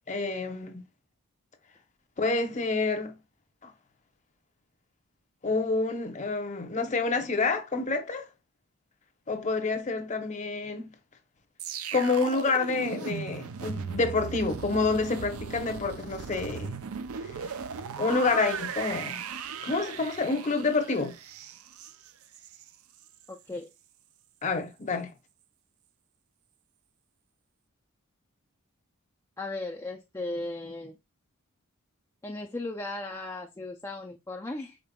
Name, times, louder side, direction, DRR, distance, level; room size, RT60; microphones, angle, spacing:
voice 1, 0.1-0.9 2.2-3.2 3.6-3.7 5.4-8.3 9.3-10.9 11.9-16.7 17.2-17.3 18.0-19.2 19.6-21.2 24.4-25.1, left 3 dB, 35° left, 0.8 m, -28 dB
sound 1, 11.6-22.7 23.0-23.2, right 6 dB, 75° right, 0.5 m, -37 dB
voice 2, 23.3-23.7 29.4-31.0 32.2-34.8, left 2 dB, 15° left, 0.4 m, -36 dB
5.2 x 4.2 x 2.2 m
head